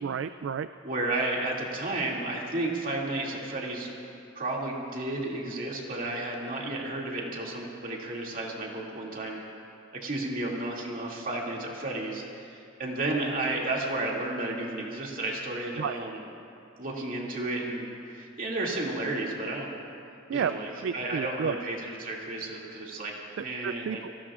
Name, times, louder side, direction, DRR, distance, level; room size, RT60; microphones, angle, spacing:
voice 1, 0.0-0.7 15.8-16.0 20.3-20.5 20.8-21.6 23.4-24.1, right 7 dB, 65° right, 11 dB, 0.3 m, -31 dB
voice 2, 0.8-3.9 4.4-9.4 10.0-16.2 16.8-19.7 20.3-24.0, right 2 dB, 45° right, -3 dB, 2.5 m, -32 dB
28.0 x 18.0 x 2.5 m, 2.6 s
head